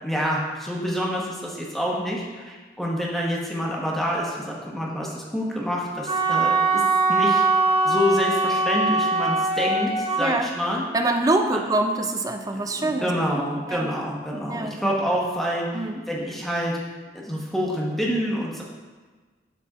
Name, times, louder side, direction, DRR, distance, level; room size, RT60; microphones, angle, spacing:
voice 1, 0.0-6.8 7.1-10.8 11.5-11.6 12.5-16.8 17.1-18.6, equal, ahead, -3 dB, 1.0 m, -27 dB
Wind instrument woodwind instrument, 6.1-10.3, right 3 dB, 35° right, 1.9 m, -22 dB
voice 2, 10.9-13.9 14.5-15.0 15.7-16.0, right 2 dB, 20° right, 5 dB, 0.4 m, -25 dB
11.5 x 4.1 x 2.4 m, 1.4 s
head